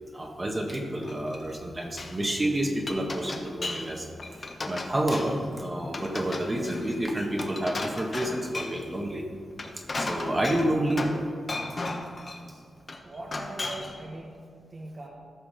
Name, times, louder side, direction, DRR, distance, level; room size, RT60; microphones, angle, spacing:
voice 1, 0.1-4.1 4.3-9.2 9.7-11.2, right 1 dB, 30° right, 1 dB, 1.6 m, -29 dB
Glass, 0.7-2.2 2.6-3.9 4.2-5.5 5.9-8.9 9.4-11.2 11.5-12.4 12.9-14.0, left 2 dB, 45° left, 1.2 m, -35 dB
voice 2, 13.0-14.4 14.7-15.1, right 2 dB, 45° right, -1 dB, 1.3 m, -41 dB
14.0 x 5.8 x 5.1 m, 2.1 s
cardioid pair, 55°, 0 cm